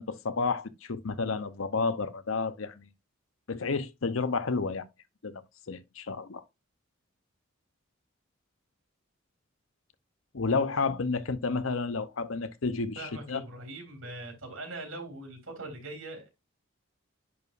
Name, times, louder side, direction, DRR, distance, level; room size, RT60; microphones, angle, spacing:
voice 1, 0.0-2.9 3.5-4.9 5.2-5.4 5.7-6.4 10.3-13.4, left 4 dB, 80° left, 0.8 m, -31 dB
voice 2, 12.9-16.3, right 2 dB, 75° right, 3.6 m, -41 dB
10.0 x 4.8 x 2.6 m
head